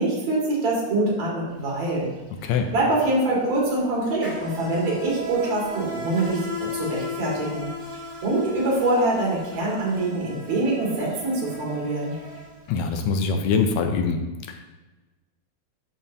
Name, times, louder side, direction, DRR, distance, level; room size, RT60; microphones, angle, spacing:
voice 1, 0.0-2.1 2.7-6.4 6.7-7.7 8.2-12.1, right 2 dB, 65° right, -4 dB, 3.1 m, -24 dB
Insect, 1.5-1.7 2.0-13.0, left 2 dB, 5° right, 1.9 m, -36 dB
voice 2, 12.7-14.2 14.5-14.7, left 5 dB, 75° left, 5 dB, 1.8 m, -23 dB
12.0 x 4.4 x 2.7 m, 1.2 s
omnidirectional pair, 3.4 m